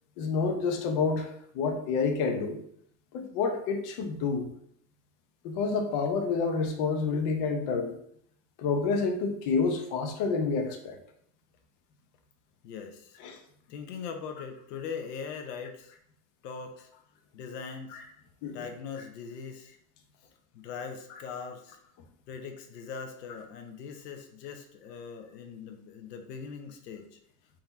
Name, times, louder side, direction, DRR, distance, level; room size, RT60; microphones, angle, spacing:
voice 1, 0.2-2.6 3.1-4.5 5.4-7.9 8.6-11.0 13.2-13.4 17.9-18.0 18.4-18.7, left 4 dB, 40° left, 3 dB, 0.7 m, -29 dB
voice 2, 12.6-13.2 13.7-15.9 16.4-16.9 17.3-18.0 18.5-19.7 20.5-21.8 22.3-27.0, left 6 dB, 85° left, 5 dB, 0.9 m, -41 dB
3.8 x 2.9 x 4.0 m, 0.67 s
supercardioid pair, 145°, 47 cm